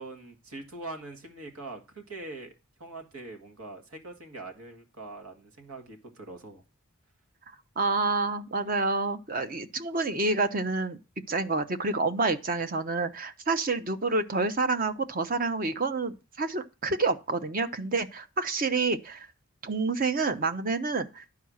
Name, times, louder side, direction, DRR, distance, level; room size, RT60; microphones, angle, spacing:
voice 1, 0.0-2.5 2.8-6.6, right 2 dB, 90° right, 1.8 m, -43 dB
voice 2, 7.8-11.0 11.3-19.3 19.6-21.2, right 3 dB, 40° right, 0.7 m, -28 dB
10.5 x 4.7 x 6.3 m
head